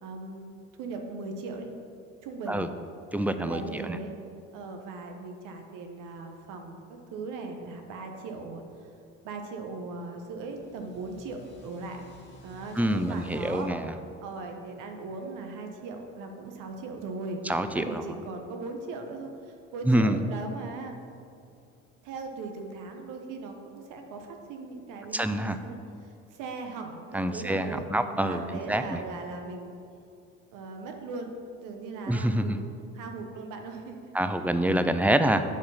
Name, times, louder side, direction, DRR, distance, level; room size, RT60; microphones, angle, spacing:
voice 1, 0.0-0.4 0.8-1.7 2.2-2.7 3.4-4.1 4.5-8.9 9.2-12.0 12.4-13.7 14.2-17.4 17.7-20.9 22.0-27.9 28.2-29.7 30.5-31.3 31.6-32.5 32.9-34.1, right 3 dB, 70° right, 4 dB, 1.2 m, -39 dB
voice 2, 3.1-4.0 12.8-13.9 17.4-18.0 19.9-20.2 25.1-25.6 27.1-28.4 28.7-29.0 32.1-32.6 34.1-35.4, right 1 dB, 5° right, 10 dB, 0.5 m, -26 dB
sound 1, 10.2-15.6, left 1 dB, 35° left, 1.9 m, -53 dB
8.7 x 4.7 x 5.8 m, 2.5 s
supercardioid pair, 70°, 32 cm